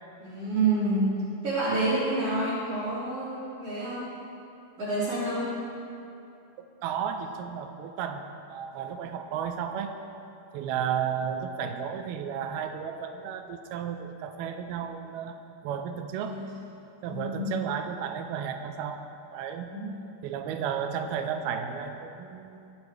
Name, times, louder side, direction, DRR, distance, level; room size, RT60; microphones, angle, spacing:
voice 1, 0.2-1.1 1.4-4.1 4.8-5.5 16.2-16.5 17.1-17.5 19.7-20.0, right 2 dB, 40° right, -11 dB, 3.2 m, -28 dB
voice 2, 6.6-8.2 8.5-9.9 10.5-15.4 15.6-16.4 17.0-19.0 19.3-19.7 20.2-22.7, right 8 dB, 80° right, 6 dB, 2.4 m, -33 dB
23.0 x 8.9 x 3.2 m, 2.7 s
omnidirectional pair, 4.8 m